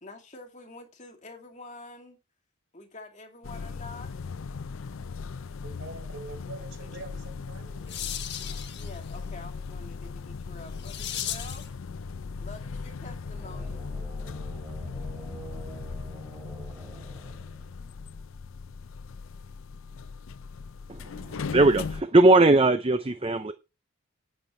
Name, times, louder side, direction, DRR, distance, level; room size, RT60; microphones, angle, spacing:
voice 1, 0.0-2.2 2.7-4.1 8.6-11.7 12.4-13.8, left 2 dB, 35° left, 2.5 m, -47 dB
sound 1, 3.4-22.0, left 4 dB, 70° left, 0.5 m, -38 dB
voice 2, 5.6-8.1, right 3 dB, 65° right, 4.1 m, -44 dB
sound 2, 7.5-11.8, left 10 dB, 50° left, 1.5 m, -38 dB
sound 3, 13.2-17.9, right 1 dB, 5° right, 4.0 m, -45 dB
voice 3, 20.9-23.5, right 2 dB, 25° right, 0.6 m, -20 dB
9.3 x 9.1 x 4.4 m
head